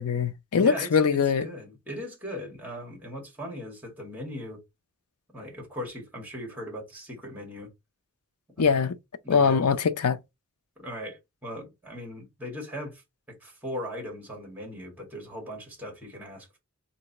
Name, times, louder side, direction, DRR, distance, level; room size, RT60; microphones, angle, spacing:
voice 1, 0.0-1.5 8.6-9.0 9.3-10.2, left 6 dB, 85° left, 0.5 m, -22 dB
voice 2, 0.6-4.6 5.3-7.7 8.6-8.9 9.2-9.7 10.8-13.0 13.3-16.6, equal, 10° right, 1.8 m, -39 dB
3.8 x 2.7 x 4.0 m
head